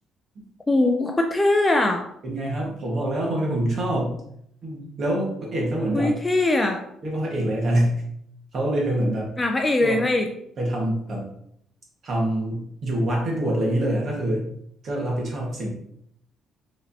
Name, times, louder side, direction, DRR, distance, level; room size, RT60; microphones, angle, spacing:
voice 1, 0.7-2.1 5.9-6.8 9.4-10.3, left 2 dB, 15° left, 4 dB, 0.4 m, -21 dB
voice 2, 2.2-4.2 4.6-6.2 7.0-8.0 8.5-9.3 9.8-10.0 10.6-11.3 12.0-14.5 14.8-15.7, right 1 dB, 40° right, -2 dB, 1.4 m, -25 dB
4.9 x 3.2 x 2.7 m, 0.71 s
cardioid pair, 145°, 0 cm